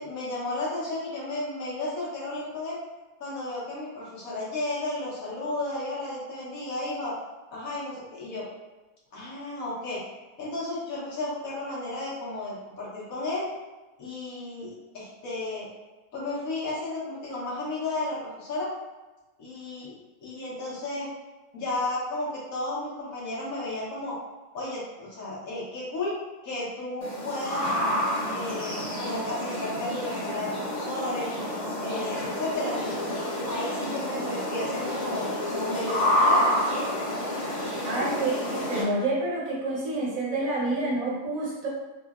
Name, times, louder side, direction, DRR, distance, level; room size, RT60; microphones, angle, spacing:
voice 1, 0.0-2.8 3.2-7.1 7.5-8.5 9.1-10.0 10.4-13.5 14.0-15.7 16.1-18.7 19.4-21.1 21.5-24.2 24.5-27.8 28.2-31.3 31.8-33.0 33.5-36.9 37.6-37.7, left 2 dB, 65° left, -6 dB, 1.2 m, -33 dB
sound 1, 27.0-38.8, left 1 dB, 35° left, 0.7 m, -29 dB
voice 2, 37.8-41.7, right 2 dB, 65° right, -5 dB, 1.1 m, -28 dB
3.7 x 2.1 x 2.3 m, 1.2 s
omnidirectional pair, 1.7 m